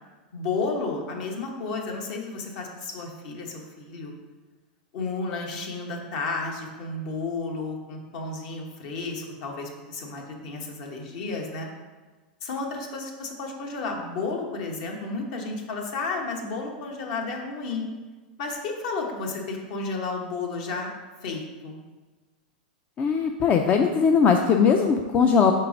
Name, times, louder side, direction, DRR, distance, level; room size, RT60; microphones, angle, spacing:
voice 1, 0.3-4.1 4.9-11.7 12.4-17.9 18.4-20.9 21.2-21.8, left 3 dB, 60° left, 1 dB, 1.2 m, -32 dB
voice 2, 23.0-25.5, left 6 dB, 30° left, 4 dB, 0.4 m, -20 dB
4.6 x 4.3 x 5.1 m, 1.3 s
hypercardioid pair, 120°, 5 cm